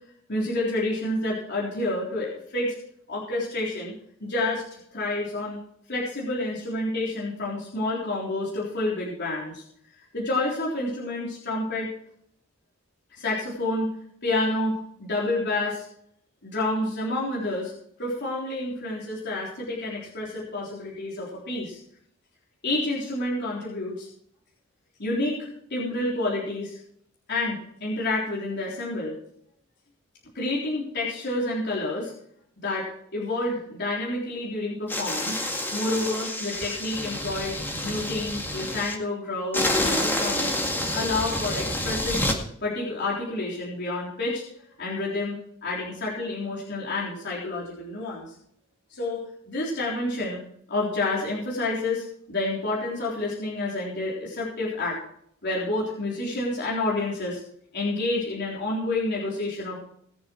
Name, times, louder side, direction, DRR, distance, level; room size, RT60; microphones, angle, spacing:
voice 1, 0.3-2.7 3.1-3.9 4.2-5.6 5.9-9.6 10.1-11.9 13.1-13.9 14.2-15.9 16.4-17.7 18.0-21.8 22.6-24.1 25.0-26.8 27.3-29.1 30.3-32.1 32.6-32.9 33.1-35.4 35.7-37.5 37.8-40.6 40.9-42.2 42.6-44.4 44.8-45.4 45.6-48.3 48.9-50.4 50.7-55.0 55.4-57.4 57.7-59.8, left 2 dB, 55° left, -6 dB, 3.7 m, -29 dB
sound 1, 34.9-38.9 39.5-42.4, left 1 dB, 10° left, 2.1 m, -28 dB
20.0 x 7.4 x 4.6 m, 0.68 s
head